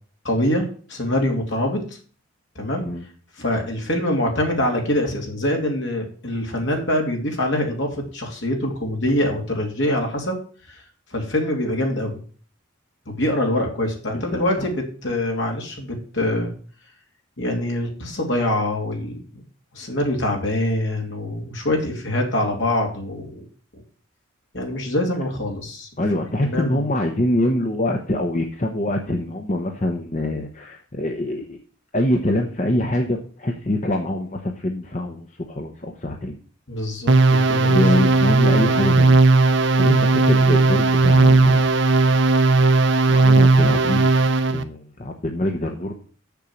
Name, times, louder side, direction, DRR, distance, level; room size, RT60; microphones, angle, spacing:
voice 1, 0.2-1.8 2.5-2.9 3.4-10.4 10.7-10.8 11.1-12.2 13.1-16.5 17.4-19.2 19.7-23.4 24.5-25.9 26.4-26.8 36.7-37.9, left 1 dB, 60° left, 1 dB, 2.7 m, -24 dB
voice 2, 14.1-14.7 26.0-31.6 31.9-36.4 37.7-39.2 39.8-41.7 43.1-44.1 44.5-45.9, left 1 dB, 35° left, 2 dB, 0.9 m, -24 dB
sound 1, 37.1-44.6, right 3 dB, 60° right, 0.7 m, -16 dB
7.0 x 6.5 x 7.7 m, 0.43 s
head